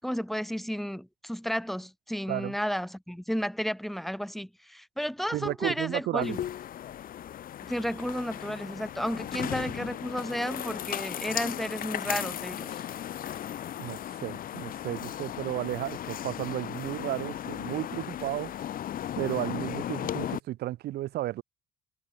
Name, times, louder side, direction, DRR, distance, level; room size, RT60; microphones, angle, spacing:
voice 1, 0.0-6.4 7.7-12.8, equal, ahead, 7.7 m, -32 dB
voice 2, 5.3-6.4 13.8-18.5 19.2-21.4, right 15 dB, 75° right, 3.9 m, -33 dB
sound 1, 6.2-20.4, left 11 dB, 55° left, 2.7 m, -36 dB
cardioid pair, 110°, 17 cm